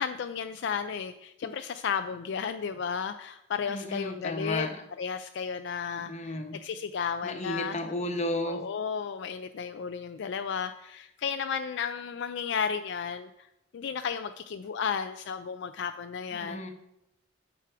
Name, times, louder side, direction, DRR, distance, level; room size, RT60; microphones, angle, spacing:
voice 1, 0.0-4.7 5.0-7.7 8.5-13.3 13.7-16.6, left 6 dB, 65° left, 8 dB, 0.4 m, -33 dB
voice 2, 3.7-4.8 5.9-6.6 7.2-8.6 16.3-16.7, left 1 dB, 35° left, 5 dB, 1.0 m, -33 dB
9.1 x 6.2 x 4.7 m, 0.84 s
head